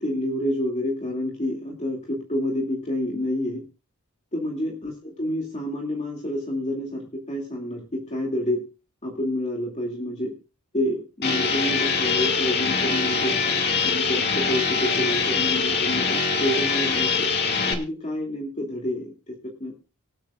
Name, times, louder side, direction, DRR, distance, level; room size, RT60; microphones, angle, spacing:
voice 1, 0.0-3.6 4.3-8.6 9.0-10.3 10.7-13.3 13.8-17.3 17.6-19.8, left 1 dB, 30° left, 0 dB, 2.4 m, -28 dB
sound 1, 11.2-17.7, left 5 dB, 50° left, 2.3 m, -23 dB
25.0 x 8.7 x 2.4 m, 0.32 s
head